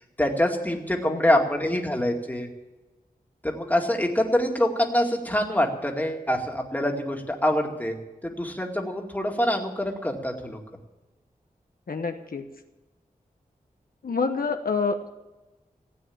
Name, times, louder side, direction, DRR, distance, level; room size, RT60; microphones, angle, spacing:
voice 1, 0.2-2.5 3.4-8.0 8.2-10.6, left 1 dB, 10° left, 1 dB, 2.3 m, -25 dB
voice 2, 1.0-1.4 11.9-12.4 14.0-15.1, left 4 dB, 75° left, 5 dB, 1.1 m, -28 dB
16.5 x 9.0 x 8.6 m, 1.1 s
wide cardioid pair, 100°, 15 cm